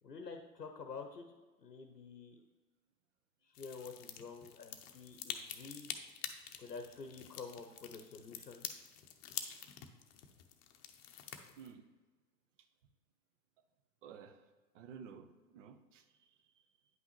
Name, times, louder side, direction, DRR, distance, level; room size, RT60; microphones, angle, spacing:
voice 1, 0.0-2.4 3.4-5.9 6.6-8.7, left 4 dB, 90° left, 6 dB, 0.8 m, -49 dB
sound 1, 3.5-11.7, left 9 dB, 40° left, 0.7 m, -47 dB
voice 2, 11.6-11.9 14.0-14.4 14.7-15.3 15.5-16.6, right 7 dB, 50° right, 9 dB, 0.8 m, -53 dB
9.2 x 5.6 x 3.0 m, 1.3 s
figure-of-eight pair, 100°, 47 cm